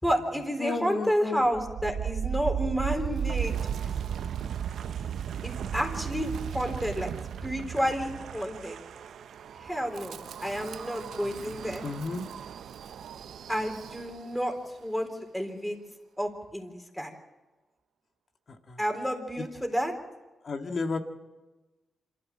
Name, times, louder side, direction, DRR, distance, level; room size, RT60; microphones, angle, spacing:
voice 1, 0.0-3.6 5.4-7.1 7.4-8.8 9.6-11.8 13.5-14.5 14.8-15.1 15.3-15.8 16.2-17.1 18.8-19.9, equal, 5° left, 5 dB, 3.7 m, -30 dB
voice 2, 0.6-1.4 11.8-12.2 18.5-18.8 19.4-19.5 20.4-21.0, left 3 dB, 55° left, 6 dB, 1.8 m, -32 dB
Wind, 1.4-14.5, right 8 dB, 85° right, 0.6 m, -35 dB
26.5 x 13.5 x 7.5 m, 1.2 s
cardioid pair, 75°, 0 cm